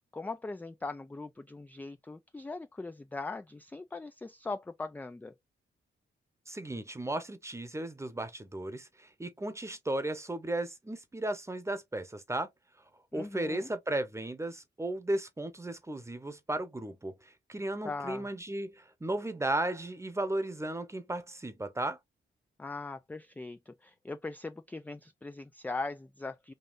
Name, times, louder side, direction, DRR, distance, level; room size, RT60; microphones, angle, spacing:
voice 1, 0.1-5.3 13.1-13.7 17.8-18.3 22.6-26.5, left 3 dB, 10° left, 0.3 m, -40 dB
voice 2, 6.5-12.5 13.1-22.0, right 1 dB, 15° right, 0.9 m, -35 dB
5.2 x 2.7 x 2.4 m
cardioid pair, 80°, 21 cm